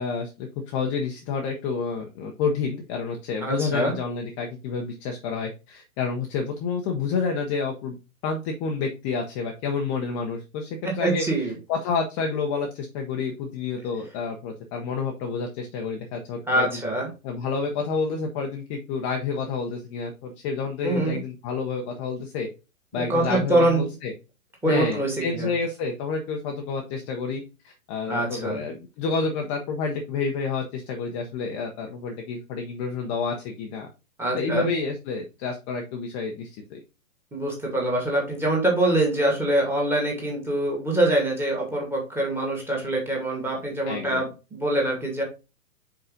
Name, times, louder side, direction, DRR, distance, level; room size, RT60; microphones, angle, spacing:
voice 1, 0.0-8.0 8.2-11.2 11.7-16.8 17.2-22.5 22.9-24.1 24.7-33.9 34.3-36.8 43.9-44.2, left 5 dB, 20° left, 3 dB, 0.7 m, -29 dB
voice 2, 3.4-3.9 11.0-11.5 16.5-17.1 20.8-21.2 22.9-23.8 24.6-25.5 28.1-28.6 34.2-34.7 37.3-45.2, right 1 dB, 5° right, -2 dB, 2.1 m, -24 dB
5.4 x 4.9 x 3.7 m, 0.30 s
hypercardioid pair, 130°, 42 cm